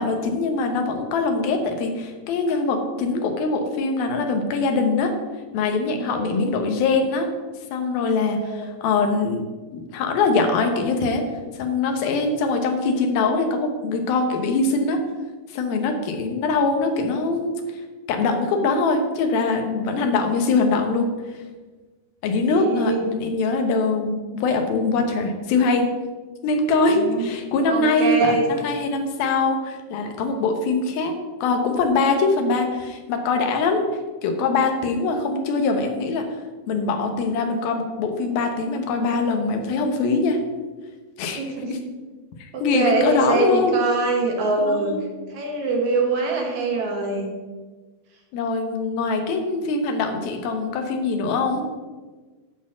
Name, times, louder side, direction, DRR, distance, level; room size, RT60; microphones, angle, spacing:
voice 1, 0.0-5.1 5.5-7.3 7.7-9.4 9.7-11.2 11.5-15.0 15.5-17.5 18.1-21.4 22.2-25.9 26.4-31.1 31.4-33.9 34.2-36.2 36.7-40.4 41.2-41.4 41.7-41.8 42.4-43.8 44.6-45.0 48.3-51.6, left 3 dB, 90° left, 4 dB, 3.0 m, -23 dB
voice 2, 6.0-6.5 8.3-8.7 22.5-23.0 26.9-27.3 27.7-28.4 41.4-41.7 42.5-45.0 45.3-47.3, right 3 dB, 60° right, 1 dB, 2.6 m, -24 dB
12.0 x 4.4 x 6.2 m, 1.3 s
omnidirectional pair, 4.1 m